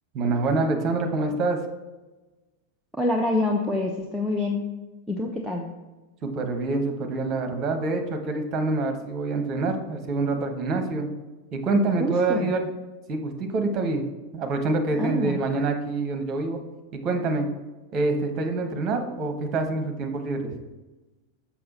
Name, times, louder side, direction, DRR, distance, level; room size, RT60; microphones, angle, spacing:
voice 1, 0.1-1.6 6.2-11.1 11.5-12.6 13.1-14.1 14.3-16.6 16.9-17.5 17.9-20.6, right 3 dB, 30° right, 5 dB, 1.1 m, -26 dB
voice 2, 3.0-4.6 5.1-5.7 12.0-12.5 15.0-15.4, left 1 dB, ahead, 0 dB, 0.7 m, -26 dB
6.7 x 6.0 x 4.1 m, 1.1 s
figure-of-eight pair, 90°, 0 cm